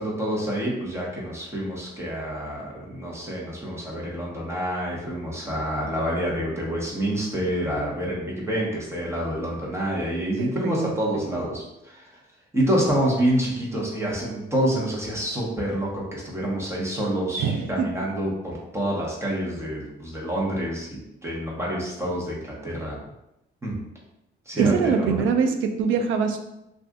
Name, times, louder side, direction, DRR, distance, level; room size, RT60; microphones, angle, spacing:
voice 1, 0.0-12.1 12.5-23.0 23.6-23.8 24.5-25.2, right 1 dB, 15° right, -4 dB, 1.0 m, -27 dB
voice 2, 10.4-11.4 17.4-17.9 24.6-26.4, right 5 dB, 80° right, 5 dB, 0.4 m, -24 dB
2.5 x 2.5 x 3.5 m, 0.88 s
cardioid pair, 90°, 20 cm